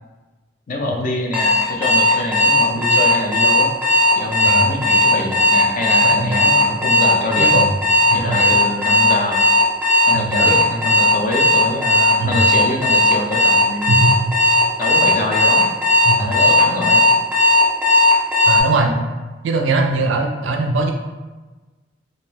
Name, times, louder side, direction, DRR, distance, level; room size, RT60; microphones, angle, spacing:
voice 1, 0.7-3.7 4.2-7.6 8.1-9.5 10.1-14.1 14.8-15.7 16.2-17.0 18.8-19.0, left 1 dB, 45° left, 1 dB, 0.4 m, -25 dB
Alarm, 1.3-18.6, left 1 dB, 5° right, 0.5 m, -15 dB
voice 2, 4.4-4.8 6.0-6.4 7.4-7.7 8.1-8.5 10.1-10.6 12.2-12.5 13.9-14.3 16.0-16.3 18.5-18.9 19.4-20.9, right 3 dB, 70° right, 2 dB, 0.4 m, -21 dB
2.5 x 2.1 x 3.3 m, 1.2 s
head